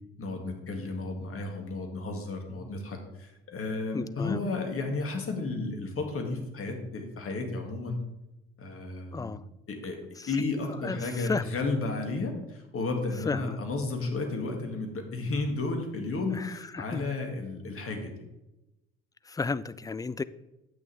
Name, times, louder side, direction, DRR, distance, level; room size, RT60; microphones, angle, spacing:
voice 1, 0.2-8.0 8.6-9.4 9.7-10.0 10.3-18.1, left 3 dB, 45° left, 3 dB, 2.3 m, -33 dB
voice 2, 3.9-4.4 9.1-9.4 10.2-10.3 10.8-11.5 13.3-13.6 16.3-17.0 19.3-20.2, left 4 dB, 10° left, 17 dB, 0.4 m, -33 dB
10.5 x 8.7 x 3.5 m, 0.98 s
hypercardioid pair, 55°, 32 cm